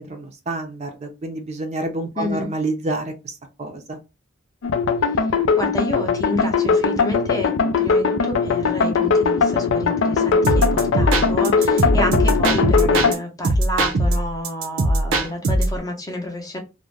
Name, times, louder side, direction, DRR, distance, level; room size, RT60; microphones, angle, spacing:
voice 1, 0.0-4.0, right 2 dB, 35° right, 5 dB, 0.5 m, -28 dB
voice 2, 2.2-2.5 5.1-16.6, equal, 20° left, 3 dB, 0.6 m, -29 dB
sound 1, 4.6-13.1, left 5 dB, 70° left, 0.3 m, -19 dB
sound 2, 10.4-13.2 13.4-15.8, right 1 dB, 85° right, 0.5 m, -20 dB
2.4 x 2.1 x 3.0 m, 0.27 s
head